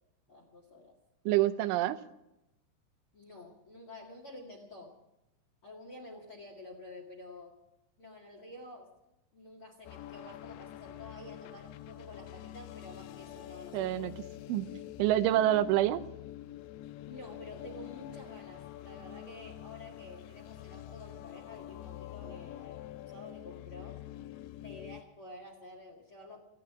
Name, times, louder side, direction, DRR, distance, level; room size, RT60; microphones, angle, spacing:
voice 1, 0.3-1.0 3.1-4.9 5.6-7.6 8.0-8.9 9.3-14.1 17.0-24.0 24.6-26.4, left 2 dB, 45° left, 2 dB, 1.8 m, -50 dB
voice 2, 1.3-2.0 13.7-14.1 14.5-14.7 15.0-16.0, right 13 dB, 90° right, 11 dB, 3.2 m, -27 dB
sound 1, 9.8-25.0, left 13 dB, 80° left, 2.8 m, -46 dB
18.5 x 15.5 x 4.8 m, 0.87 s
omnidirectional pair, 5.4 m